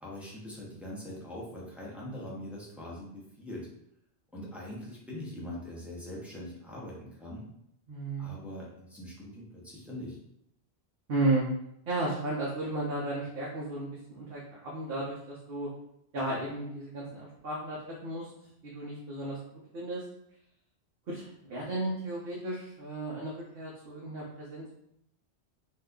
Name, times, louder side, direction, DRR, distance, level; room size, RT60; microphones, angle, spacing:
voice 1, 0.0-3.7 4.3-7.5 8.2-10.2, left 1 dB, ahead, -6 dB, 0.7 m, -42 dB
voice 2, 7.9-8.3 11.1-11.4 11.9-15.7 16.1-18.3 18.6-19.4 19.7-20.0 21.1-24.7, right 2 dB, 60° right, -4 dB, 0.9 m, -34 dB
2.7 x 2.4 x 3.5 m, 0.76 s
omnidirectional pair, 1.1 m